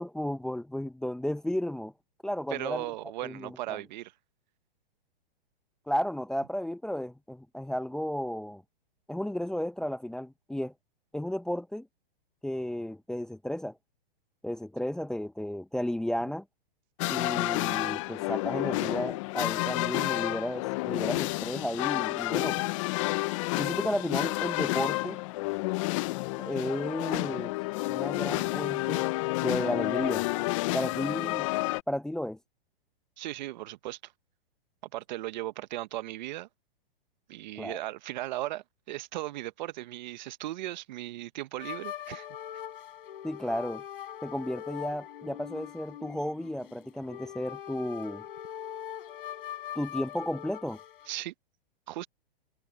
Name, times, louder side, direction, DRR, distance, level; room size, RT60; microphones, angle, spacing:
voice 1, 0.0-1.9 2.2-2.9 3.2-3.8 5.9-8.6 9.1-10.7 11.1-11.9 12.4-13.8 14.4-16.4 17.1-22.6 23.5-25.2 26.4-27.5 27.9-29.1 29.4-30.3 30.7-31.5 31.9-32.4 37.6-37.8 43.2-43.8 44.2-48.2 49.7-50.8, left 1 dB, ahead, 0.9 m, -33 dB
voice 2, 2.5-4.1 33.2-34.1 34.9-36.5 37.3-42.3 51.1-51.3 51.9-52.1, right 15 dB, 50° right, 1.2 m, -37 dB
sound 1, 17.0-31.8, left 22 dB, 35° left, 0.6 m, -30 dB
sound 2, 41.6-51.1, left 11 dB, 65° left, 3.7 m, -42 dB
hypercardioid pair, 140°, 29 cm